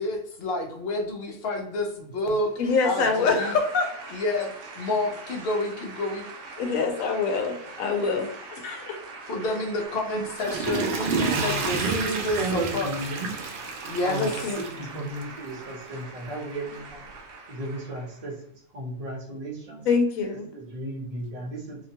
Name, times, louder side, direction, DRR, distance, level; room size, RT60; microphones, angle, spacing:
voice 1, 0.0-2.5 2.8-3.5 4.1-6.2 9.3-12.9 13.8-14.2, left 2 dB, 55° left, 1 dB, 0.7 m, -29 dB
sound 1, 2.3-18.4, right 3 dB, 65° right, 1.0 m, -43 dB
voice 2, 2.6-3.9 6.6-9.0 14.2-14.6 19.9-20.5, left 4 dB, 80° left, 4 dB, 1.0 m, -25 dB
Water / Toilet flush, 10.1-15.4 15.9-16.0, right 4 dB, 90° right, 0.4 m, -30 dB
voice 3, 11.0-13.3 14.0-17.1 17.5-18.4 18.7-19.9 20.5-21.8, right 2 dB, 35° right, -3 dB, 0.8 m, -34 dB
2.8 x 2.2 x 2.8 m, 0.68 s
omnidirectional pair, 1.5 m